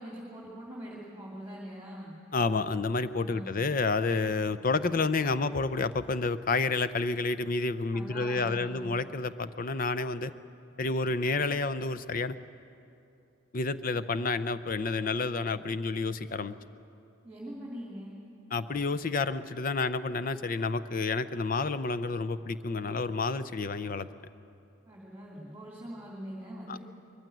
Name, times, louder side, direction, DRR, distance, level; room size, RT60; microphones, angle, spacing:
voice 1, 0.0-2.1 3.3-3.6 7.9-8.9 17.2-18.1 24.9-26.8, equal, 10° right, -5 dB, 2.8 m, -43 dB
voice 2, 2.3-10.3 10.8-12.4 13.5-16.5 18.5-24.1 26.7-26.8, left 3 dB, 40° left, 13 dB, 0.6 m, -30 dB
21.5 x 15.5 x 9.2 m, 2.6 s
head